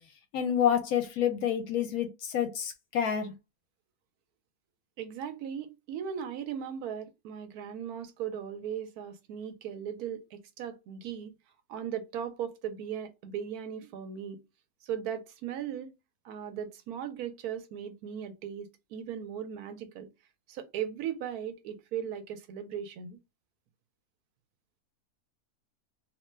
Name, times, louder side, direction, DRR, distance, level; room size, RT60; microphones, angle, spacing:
voice 1, 0.3-3.3, left 9 dB, 75° left, 1.0 m, -28 dB
voice 2, 5.0-11.3 11.7-14.4 14.8-15.9 16.2-20.1 20.5-23.2, right 8 dB, 80° right, 1.1 m, -38 dB
2.7 x 2.2 x 3.2 m
omnidirectional pair, 1.6 m